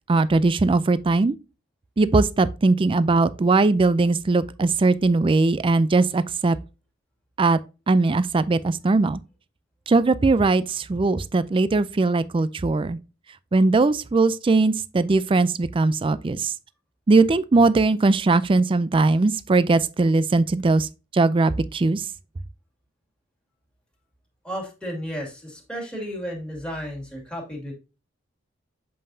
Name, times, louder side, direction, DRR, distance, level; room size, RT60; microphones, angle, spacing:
voice 1, 0.1-1.4 2.0-6.6 7.4-7.6 7.9-9.2 9.9-13.0 13.5-16.5 17.1-22.1, right 3 dB, 25° right, 0.4 m, -20 dB
voice 2, 24.4-27.7, equal, 5° left, 2.2 m, -33 dB
7.6 x 5.4 x 2.7 m
head